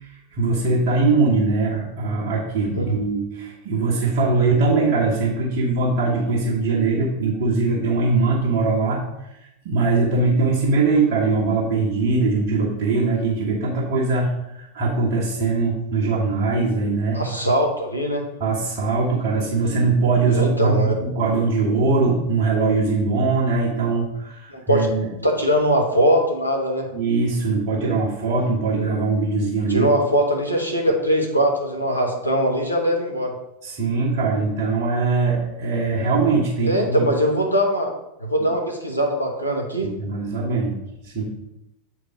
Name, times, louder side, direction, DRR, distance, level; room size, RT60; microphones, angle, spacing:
voice 1, 0.4-9.0 9.6-17.2 18.4-25.1 26.9-29.9 33.6-37.1 39.8-41.2, right 3 dB, 50° right, -6 dB, 1.6 m, -21 dB
voice 2, 17.1-18.3 20.3-21.0 24.5-24.9 25.2-26.9 29.7-33.3 36.6-37.9 38.2-39.9, equal, 90° left, 1 dB, 1.2 m, -21 dB
8.4 x 4.6 x 3.8 m, 0.88 s
figure-of-eight pair, 85°, 0 cm